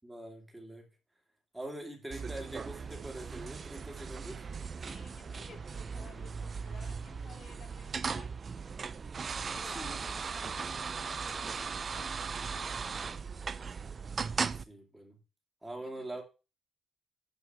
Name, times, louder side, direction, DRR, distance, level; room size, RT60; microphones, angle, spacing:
voice 1, 0.0-0.9 1.5-4.4 9.4-10.0 14.6-15.2 15.6-16.2, right 1 dB, 10° right, 2.8 m, -44 dB
sound 1, 2.1-14.6, right 5 dB, 35° right, 0.5 m, -38 dB
voice 2, 4.8-8.4 9.5-13.2 15.8-16.2, left 6 dB, 55° left, 1.6 m, -56 dB
12.0 x 4.9 x 6.8 m
cardioid pair, 165°, 0 cm